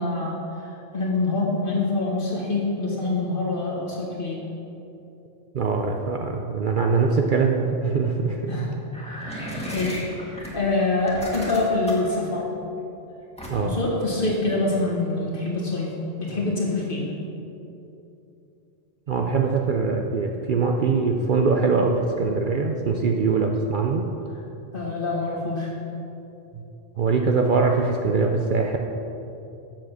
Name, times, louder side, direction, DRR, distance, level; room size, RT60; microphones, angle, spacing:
voice 1, 0.0-4.4 8.5-12.4 13.6-15.9 16.2-17.1 24.7-25.7, left 2 dB, 45° left, -4 dB, 2.0 m, -26 dB
voice 2, 5.5-8.4 13.5-13.8 19.1-24.0 27.0-28.8, right 4 dB, 55° right, 2 dB, 0.6 m, -22 dB
sound 1, 8.9-10.5 11.0-12.1 13.4-13.8, equal, 5° left, 1.6 m, -34 dB
7.5 x 7.4 x 6.2 m, 2.9 s
omnidirectional pair, 1.2 m